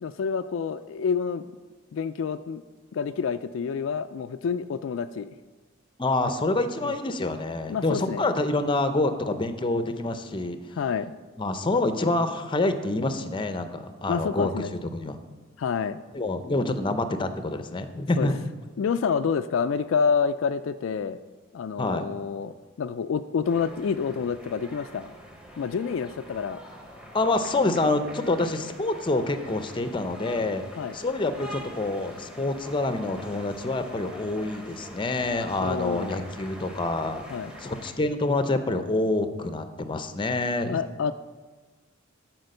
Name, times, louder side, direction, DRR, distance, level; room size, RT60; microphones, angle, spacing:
voice 1, 0.0-1.5 1.9-2.6 2.9-5.3 6.8-6.9 7.7-8.2 10.8-11.1 14.1-14.7 15.6-16.0 18.2-18.3 18.8-21.2 21.5-25.1 25.6-26.6 27.6-27.8 30.8-31.0 35.6-36.2 37.3-37.5 40.7-41.1, left 6 dB, 70° left, 10 dB, 0.3 m, -28 dB
voice 2, 6.0-10.6 11.4-14.6 14.9-15.2 16.1-18.4 21.8-22.0 27.1-30.6 30.9-37.2 37.6-40.8, left 2 dB, 25° left, 9 dB, 0.6 m, -27 dB
sound 1, 23.4-37.9, equal, 5° right, 1.1 m, -44 dB
12.5 x 4.5 x 6.6 m, 1.3 s
head